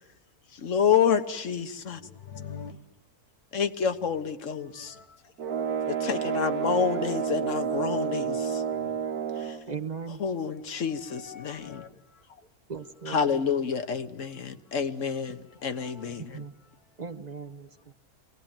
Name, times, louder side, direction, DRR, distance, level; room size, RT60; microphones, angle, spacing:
voice 1, 0.6-2.0 3.5-4.9 5.9-8.6 9.4-9.6 10.2-11.8 13.1-16.4, left 7 dB, 60° left, 1.5 m, -28 dB
voice 2, 1.9-2.8 4.7-5.3 7.8-8.9 10.7-12.5 15.3-15.4 15.7-16.2, left 6 dB, 85° left, 1.9 m, -47 dB
sound 1, 5.4-9.6, right 7 dB, 90° right, 1.8 m, -30 dB
voice 3, 9.7-10.2 12.7-13.3 16.2-16.5 17.0-17.9, right 5 dB, 35° right, 0.9 m, -38 dB
25.5 x 18.0 x 8.9 m
omnidirectional pair, 1.5 m